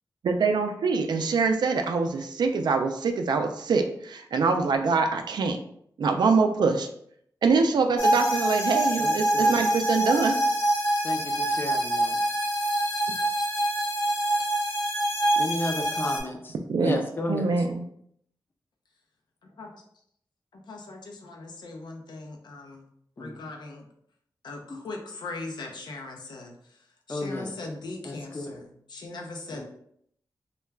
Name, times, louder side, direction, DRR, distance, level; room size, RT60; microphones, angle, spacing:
voice 1, 0.2-5.6 6.0-6.9 7.4-10.3 16.7-17.0 17.3-17.8, right 4 dB, 75° right, 6 dB, 0.3 m, -24 dB
sound 1, 8.0-16.2, right 1 dB, 45° left, 0.8 m, -25 dB
voice 2, 9.0-9.6 11.0-12.2 15.4-16.5 16.8-17.5 23.2-23.5 27.1-27.5 28.0-28.6 29.5-29.6, left 2 dB, 30° left, 2 dB, 0.5 m, -33 dB
voice 3, 20.5-22.9 23.2-23.8 24.4-26.5 27.1-29.6, left 2 dB, 85° left, 1 dB, 0.5 m, -39 dB
2.2 x 2.2 x 3.2 m, 0.68 s
wide cardioid pair, 100°, 7 cm